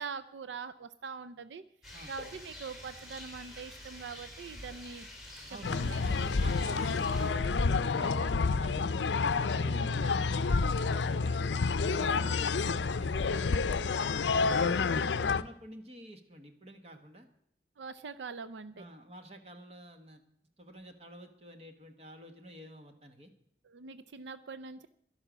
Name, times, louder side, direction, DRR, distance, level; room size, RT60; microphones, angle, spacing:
voice 1, 0.0-1.6 2.1-5.1 5.5-6.4 7.7-8.2 9.6-9.9 12.1-12.4 14.8-15.3 17.8-18.8 23.6-24.9, right 4 dB, 85° right, 13 dB, 0.5 m, -43 dB
Rain, 1.8-7.3, left 1 dB, ahead, 3.4 m, -48 dB
voice 2, 5.5-11.4 11.8-14.1 14.7-17.3 18.7-20.2 20.6-23.3, right 1 dB, 35° right, 6 dB, 1.2 m, -49 dB
sound 1, 5.6-15.4, left 4 dB, 85° left, 0.5 m, -29 dB
12.0 x 11.5 x 6.1 m, 0.67 s
head